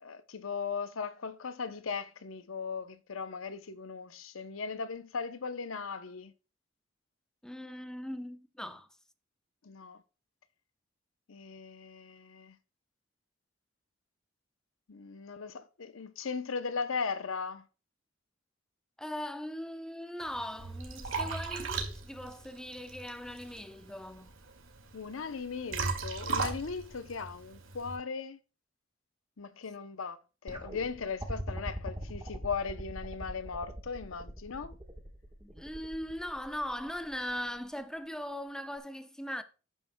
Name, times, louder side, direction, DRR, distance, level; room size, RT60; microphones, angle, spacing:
voice 1, 0.0-6.3 9.6-10.0 11.3-12.6 14.9-17.6 24.9-28.4 29.4-30.2 30.4-34.7, left 5 dB, 85° left, 0.7 m, -38 dB
voice 2, 7.4-8.9 19.0-24.3 35.4-39.4, equal, 5° left, 0.7 m, -39 dB
Liquid, 20.2-28.0, right 4 dB, 85° right, 2.1 m, -38 dB
sound 1, 30.5-37.6 38.8-38.9, equal, 20° right, 1.3 m, -42 dB
11.5 x 9.3 x 2.2 m
head